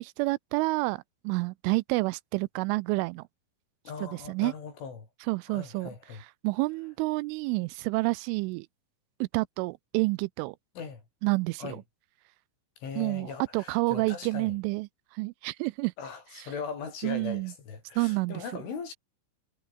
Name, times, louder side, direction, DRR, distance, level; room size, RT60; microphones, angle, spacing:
voice 1, 0.0-3.3 4.0-4.5 5.3-5.9 6.4-8.7 9.2-10.6 11.2-11.8 13.0-15.9 16.4-16.5 17.0-17.5 18.0-18.4, right 24 dB, 85° right, 3.0 m, -29 dB
voice 2, 3.8-5.1 5.5-6.2 10.8-11.0 11.6-11.8 12.8-14.5 16.0-18.9, left 6 dB, 75° left, 8.5 m, -39 dB
omnidirectional pair, 5.6 m